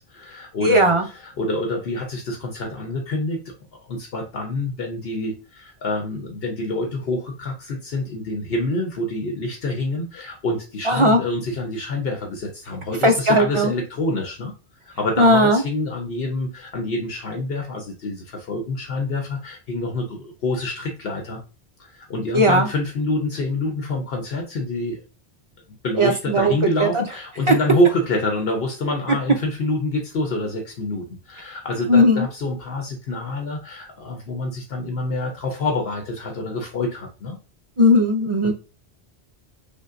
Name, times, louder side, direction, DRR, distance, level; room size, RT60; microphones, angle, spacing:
voice 1, 0.0-0.9 1.2-3.5 3.9-14.5 14.9-21.4 21.8-25.0 25.8-37.4 38.4-38.5, left 2 dB, 65° left, 3 dB, 0.9 m, -26 dB
voice 2, 0.6-1.1 10.8-11.2 13.0-13.7 15.2-15.6 22.3-22.7 26.0-26.5 26.8-27.0 27.5-27.6 31.9-32.3 37.8-38.5, equal, 40° right, 3 dB, 0.5 m, -17 dB
5.2 x 2.2 x 2.4 m, 0.32 s
omnidirectional pair, 1.1 m